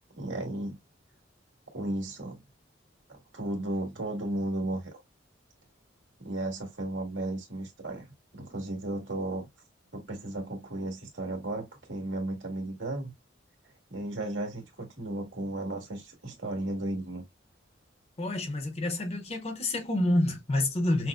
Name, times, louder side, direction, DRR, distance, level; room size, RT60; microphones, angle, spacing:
voice 1, 0.2-0.8 1.7-2.4 3.1-4.9 6.2-9.5 9.9-13.1 13.9-17.2, right 1 dB, 80° right, 1.8 m, -34 dB
voice 2, 18.2-21.1, left 1 dB, 35° left, 0.8 m, -28 dB
5.9 x 2.1 x 2.4 m
head